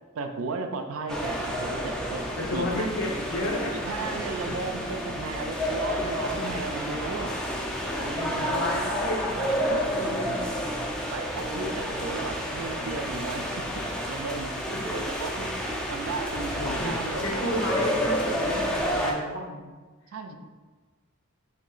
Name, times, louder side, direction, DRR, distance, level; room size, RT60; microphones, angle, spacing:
voice 1, 0.1-2.2 2.5-2.9 3.7-7.3 7.9-8.3 9.4-9.6 10.0-10.1 11.1-13.7 14.1-15.5 15.9-17.6 20.1-20.3, right 3 dB, 70° right, 6 dB, 0.4 m, -35 dB
sound 1, 1.1-19.1, equal, 5° left, 0.3 m, -30 dB
voice 2, 2.4-3.7 4.4-4.7 7.8-10.4 14.7-14.9 16.6-16.9 17.2-19.7 20.3-20.4, left 1 dB, 65° left, -1 dB, 0.7 m, -32 dB
3.0 x 2.8 x 3.8 m, 1.3 s
head